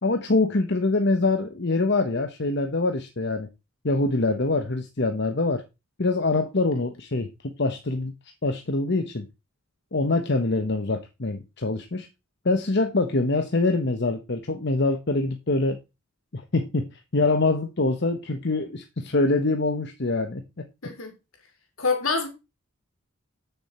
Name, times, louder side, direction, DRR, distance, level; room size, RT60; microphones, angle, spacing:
voice 1, 0.0-3.5 3.8-5.6 6.0-8.1 8.4-9.3 9.9-12.1 12.4-15.8 16.3-16.9 17.1-20.7, left 2 dB, 55° left, 1.0 m, -24 dB
voice 2, 21.8-22.3, left 4 dB, 75° left, 2.9 m, -25 dB
8.5 x 6.9 x 4.2 m
head